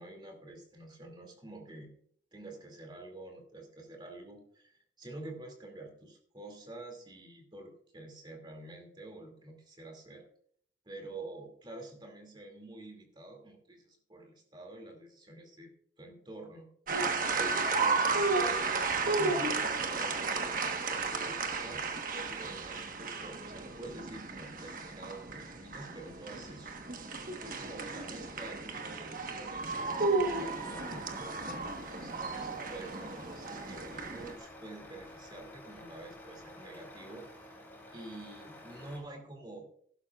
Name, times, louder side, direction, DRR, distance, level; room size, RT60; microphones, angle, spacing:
voice 1, 0.0-1.9 2.3-10.3 10.9-15.7 16.0-16.7 17.3-21.9 22.1-37.5 37.9-39.7, right 2 dB, 25° right, 3 dB, 2.4 m, -48 dB
sound 1, 16.9-34.3, right 3 dB, 45° right, 1.2 m, -33 dB
Truck, 29.6-39.0, left 1 dB, 10° left, 3.2 m, -51 dB
15.0 x 12.0 x 2.4 m, 0.62 s
head